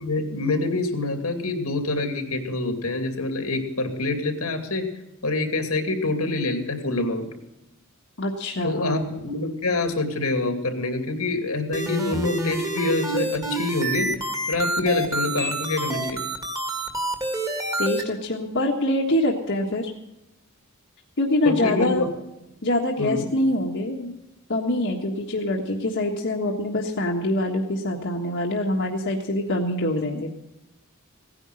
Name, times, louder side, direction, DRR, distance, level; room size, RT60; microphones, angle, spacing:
voice 1, 0.0-4.9 5.2-7.3 8.6-14.1 14.5-16.2 21.4-22.1 23.0-23.3, left 2 dB, 85° left, 6 dB, 2.6 m, -26 dB
voice 2, 8.2-9.0 17.8-19.9 21.2-22.0 22.6-24.2 24.5-30.3, left 1 dB, 60° left, 0 dB, 1.5 m, -24 dB
sound 1, 11.7-18.0, right 2 dB, 15° right, 2.0 m, -28 dB
17.0 x 10.0 x 6.3 m, 0.92 s
head